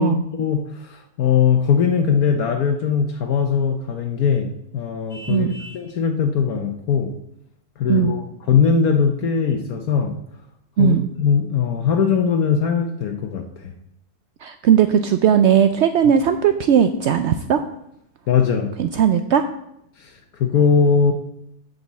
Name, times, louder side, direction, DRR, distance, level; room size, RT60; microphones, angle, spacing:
voice 1, 0.0-4.5 4.7-5.5 5.7-7.1 7.8-10.1 10.8-13.7 18.3-18.7 20.0-21.1, left 6 dB, 70° left, 4 dB, 1.2 m, -20 dB
Vehicle horn car horn honking, 5.1-5.9, right 1 dB, ahead, 2.3 m, -41 dB
voice 2, 5.3-5.6 7.9-8.2 10.8-11.1 14.4-17.6 18.8-19.4, right 8 dB, 80° right, 8 dB, 0.6 m, -17 dB
8.0 x 5.2 x 7.2 m, 0.77 s
omnidirectional pair, 1.7 m